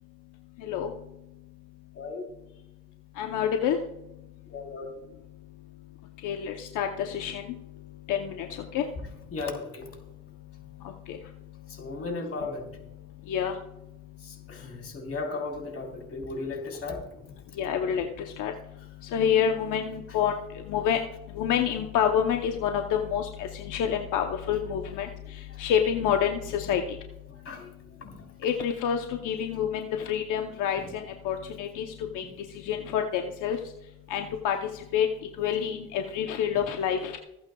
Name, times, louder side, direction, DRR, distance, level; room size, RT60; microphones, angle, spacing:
voice 1, 1.9-2.3 4.5-4.9 9.3-9.9 11.7-12.7 14.2-17.1 20.1-20.2 25.1-25.2 25.5-25.6 26.7-26.8 27.4-27.7 28.0-28.2 30.8-30.9 32.2-32.4 36.5-36.6, left 3 dB, 50° left, 1 dB, 4.1 m, -36 dB
voice 2, 3.2-3.8 6.2-7.4 8.1-8.5 8.7-8.8 11.1-11.2 13.3-13.5 17.6-18.1 18.4-18.5 19.1-20.3 20.7-21.0 21.4-25.1 25.6-26.8 28.4-30.8 31.2-31.9 32.1-32.2 32.6-33.6 34.1-34.6 34.9-35.1 35.4-37.1, left 8 dB, 90° left, 4 dB, 0.9 m, -27 dB
26.0 x 8.7 x 2.3 m, 0.94 s
cardioid pair, 90°, 30 cm